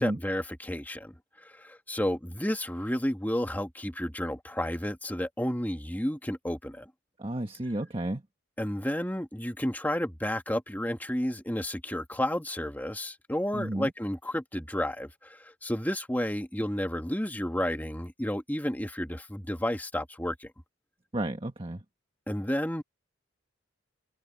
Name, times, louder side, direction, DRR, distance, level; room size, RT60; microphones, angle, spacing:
voice 1, 0.0-6.9 8.6-20.5 22.3-22.8, left 1 dB, 10° left, 2.0 m, -31 dB
voice 2, 7.2-8.2 13.5-13.9 21.1-21.8, right 1 dB, 25° right, 1.5 m, -32 dB
head